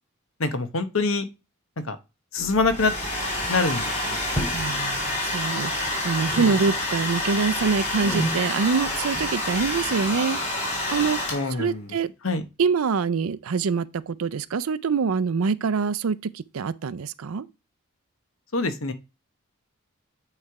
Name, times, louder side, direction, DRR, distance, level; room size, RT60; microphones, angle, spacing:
voice 1, 0.4-1.2 1.8-2.0 2.3-2.9 3.5-4.2 11.3-12.0 12.2-12.4 18.5-18.9, left 3 dB, 70° left, 1.0 m, -25 dB
sound 1, 2.4-3.1 3.3-3.7 4.2-4.8 5.1-5.9 6.2-7.1 7.5-11.2, right 1 dB, 20° left, 2.3 m, -34 dB
Domestic sounds home sounds, 2.5-11.7, left 1 dB, 35° left, 2.9 m, -28 dB
voice 2, 4.5-11.2 11.6-12.1 12.6-17.5, right 5 dB, 85° right, 0.5 m, -25 dB
8.8 x 3.3 x 4.7 m
head